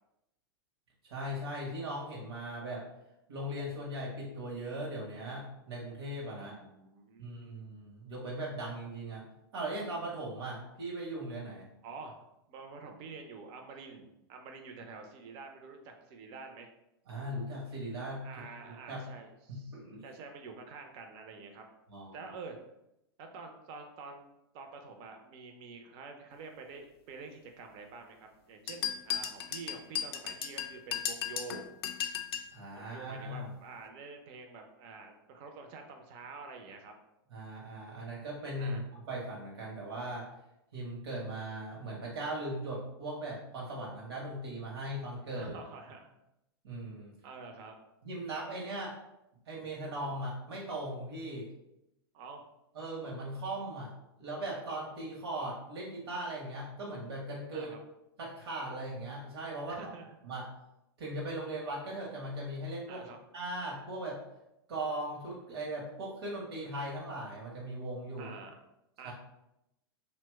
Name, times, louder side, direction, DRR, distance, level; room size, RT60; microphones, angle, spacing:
voice 1, 1.0-2.8 3.3-6.6 7.2-9.3 9.5-11.7 17.1-18.3 18.6-19.0 19.5-20.0 21.9-22.3 32.5-33.5 37.3-40.3 40.7-45.6 46.6-47.1 48.0-48.9 49.5-51.5 52.7-53.9 54.2-57.7 58.2-59.9 60.2-60.4 61.0-63.0 63.3-64.2 64.7-68.3 69.0-69.1, right 1 dB, 75° right, -3 dB, 0.8 m, -39 dB
voice 2, 6.3-7.6 11.8-12.2 12.5-16.7 18.2-21.6 22.1-22.6 23.2-31.6 32.7-36.9 38.6-38.8 45.3-46.1 47.2-47.8 52.1-52.4 57.5-57.8 59.7-60.1 62.9-63.2 68.2-68.6 69.0-69.1, right 4 dB, 45° right, 4 dB, 0.5 m, -48 dB
sound 1, 28.7-32.5, left 8 dB, 75° left, 0.4 m, -36 dB
2.8 x 2.0 x 3.3 m, 0.87 s
hypercardioid pair, 110°, 13 cm